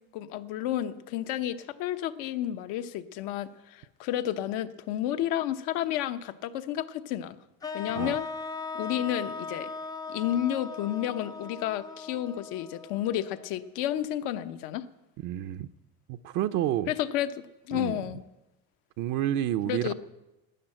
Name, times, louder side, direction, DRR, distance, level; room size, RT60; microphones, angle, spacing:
voice 1, 0.1-7.4 7.7-8.3 8.7-9.7 10.1-14.8 16.9-17.3 17.6-18.2 19.6-19.9, left 12 dB, 80° left, 10 dB, 1.0 m, -31 dB
sound 1, 7.6-13.7, left 4 dB, 10° left, 0.4 m, -39 dB
voice 2, 15.2-15.7 16.1-16.9 17.7-18.0 19.0-19.9, right 12 dB, 60° right, 9 dB, 0.6 m, -29 dB
12.5 x 9.9 x 8.9 m, 0.98 s
cardioid pair, 120°, 36 cm